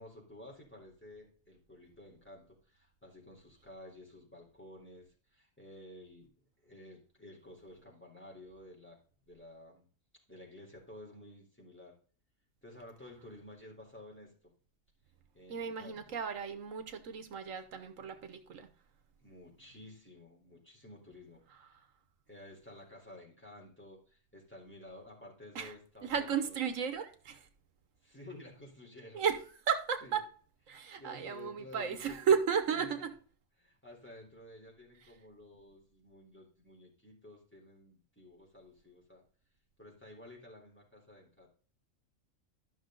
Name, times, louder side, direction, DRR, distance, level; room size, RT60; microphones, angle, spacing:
voice 1, 0.0-9.0 9.3-9.8 10.3-11.9 12.6-14.5 15.3-16.2 19.2-21.8 22.3-26.6 28.0-29.3 30.0-30.2 30.7-32.3 32.7-33.1 33.6-39.2 39.8-41.5, left 1 dB, 10° left, 3.8 m, -53 dB
voice 2, 15.5-18.7 25.5-25.7 26.0-27.5 29.1-29.4 29.7-30.2 30.7-33.1, right 7 dB, 85° right, 1.5 m, -33 dB
12.5 x 6.3 x 3.8 m
omnidirectional pair, 1.3 m